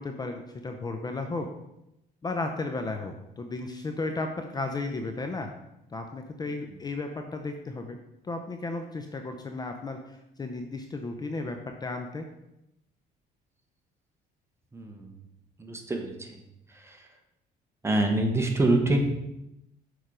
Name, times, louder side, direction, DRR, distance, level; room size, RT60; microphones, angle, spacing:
voice 1, 0.0-1.5 2.2-5.5 5.9-8.0 8.2-12.3, left 3 dB, 25° left, 5 dB, 0.6 m, -34 dB
voice 2, 14.7-15.2 15.6-16.4 16.7-17.1 17.8-19.0, right 2 dB, 15° right, 2 dB, 1.1 m, -26 dB
6.6 x 4.6 x 5.0 m, 0.87 s
cardioid pair, 110°, 17 cm